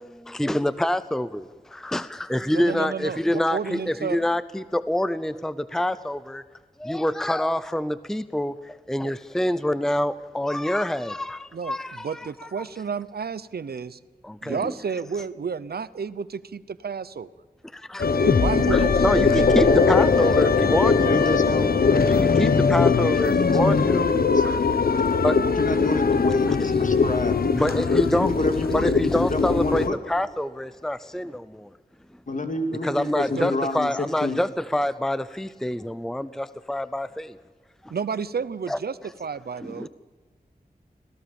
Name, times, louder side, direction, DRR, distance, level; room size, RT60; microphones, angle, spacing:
voice 1, 0.0-6.4 6.8-12.5 14.2-14.7 17.7-18.1 18.7-21.3 22.1-24.1 24.7-24.8 25.2-25.4 26.5-26.6 27.5-28.3 28.7-31.7 32.8-37.4 37.8-37.9 38.7-38.8 39.6-39.9, left 1 dB, 5° left, 15 dB, 0.6 m, -26 dB
voice 2, 2.5-3.2 3.5-4.2 9.0-9.1 11.5-14.0 14.4-17.3 18.2-19.5 33.3-33.4 37.9-39.9, right 6 dB, 85° right, 17 dB, 0.8 m, -31 dB
sound 1, 18.0-29.9, left 5 dB, 70° left, 1.0 m, -20 dB
voice 3, 20.9-22.6 23.6-24.4 25.6-27.4 28.1-30.0 32.3-33.9 34.2-34.4, left 2 dB, 55° left, 6 dB, 2.5 m, -28 dB
26.0 x 17.5 x 7.1 m, 1.4 s
wide cardioid pair, 90°, 16 cm